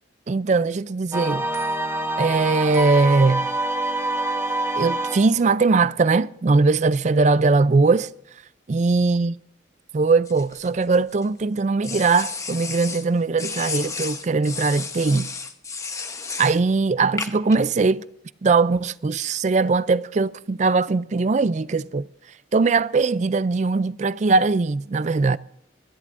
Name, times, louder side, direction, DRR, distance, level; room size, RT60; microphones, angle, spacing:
voice 1, 0.3-1.5 2.2-3.5 4.8-8.1 8.7-9.3 9.9-15.3 16.4-18.1 18.4-22.1 22.5-25.4, right 4 dB, 40° right, 0.4 m, -20 dB
sound 1, 1.1-5.4, right 1 dB, 15° right, 0.9 m, -26 dB
sound 2, 10.3-11.3 11.8-13.1 13.4-16.6 17.2-17.6, left 4 dB, 15° left, 0.9 m, -32 dB
25.0 x 12.0 x 2.6 m
head